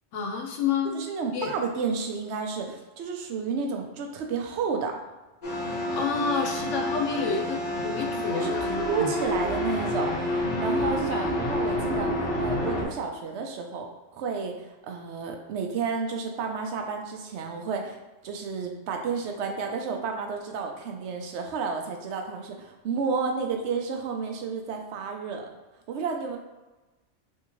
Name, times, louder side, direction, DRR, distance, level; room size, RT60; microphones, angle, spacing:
voice 1, 0.1-0.9 1.3-1.5 5.9-9.1 11.1-11.3, left 5 dB, 80° left, 2 dB, 0.9 m, -29 dB
voice 2, 0.9-5.0 8.3-13.9 14.1-18.0 18.2-25.5 25.9-26.4, right 5 dB, 70° right, 3 dB, 0.8 m, -31 dB
sound 1, 5.4-12.8, left 1 dB, 45° left, 0.7 m, -28 dB
3.5 x 2.8 x 3.0 m, 1.1 s
omnidirectional pair, 1.3 m